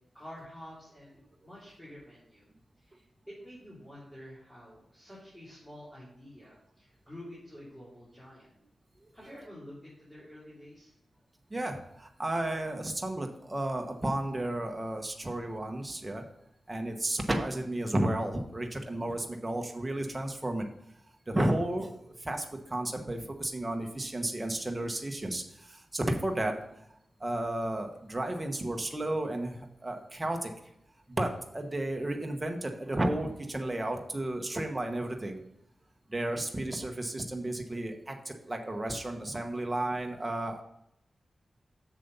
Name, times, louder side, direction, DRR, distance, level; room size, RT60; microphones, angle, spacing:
voice 1, 0.1-2.5 2.8-8.5 9.1-10.9, equal, 10° left, -8 dB, 3.3 m, -49 dB
voice 2, 11.5-16.2 16.7-20.7 21.3-21.9 22.2-26.5 27.2-30.5 31.2-35.4 36.1-40.6, right 1 dB, 20° right, 3 dB, 1.2 m, -33 dB
7.5 x 6.8 x 5.5 m, 0.78 s
wide cardioid pair, 105°, 0 cm